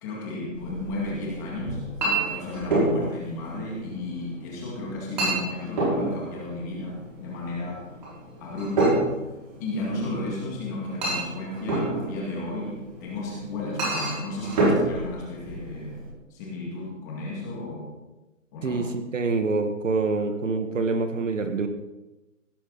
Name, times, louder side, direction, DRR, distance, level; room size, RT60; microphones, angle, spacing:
voice 1, 0.0-1.8 2.1-7.8 8.4-9.0 9.6-16.0 16.3-17.9 18.5-18.8, left 2 dB, 15° left, -3 dB, 2.2 m, -33 dB
Chink clink, 0.5-16.1, right 2 dB, 35° right, 5.5 m, -29 dB
voice 2, 18.6-21.7, right 3 dB, 70° right, 7 dB, 1.8 m, -26 dB
17.0 x 11.5 x 4.1 m, 1.0 s
hypercardioid pair, 180°, 39 cm